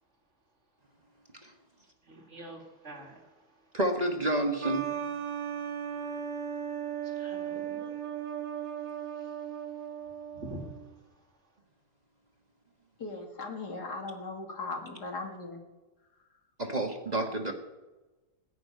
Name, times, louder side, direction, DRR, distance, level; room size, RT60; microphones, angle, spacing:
voice 1, 2.1-3.2 7.0-7.9 10.3-10.7, right 1 dB, 45° right, 2 dB, 2.7 m, -45 dB
voice 2, 3.7-4.9 16.6-17.5, right 1 dB, 25° right, 3 dB, 1.4 m, -29 dB
sound 1, 4.6-10.9, right 8 dB, 80° right, 2.1 m, -36 dB
voice 3, 13.0-15.6, left 3 dB, 85° left, 1 dB, 3.1 m, -38 dB
20.0 x 6.7 x 9.1 m, 1.1 s
omnidirectional pair, 1.7 m